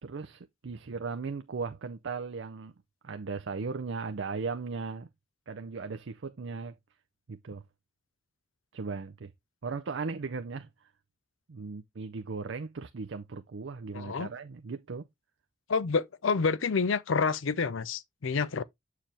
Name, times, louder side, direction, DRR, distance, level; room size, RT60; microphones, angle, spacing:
voice 1, 0.0-2.7 3.0-5.1 5.5-6.8 7.3-7.6 8.7-9.3 9.6-10.7 11.5-15.0, right 4 dB, 65° right, 0.5 m, -37 dB
voice 2, 13.9-14.3 15.7-18.6, left 5 dB, 70° left, 0.6 m, -28 dB
7.5 x 4.7 x 3.3 m
head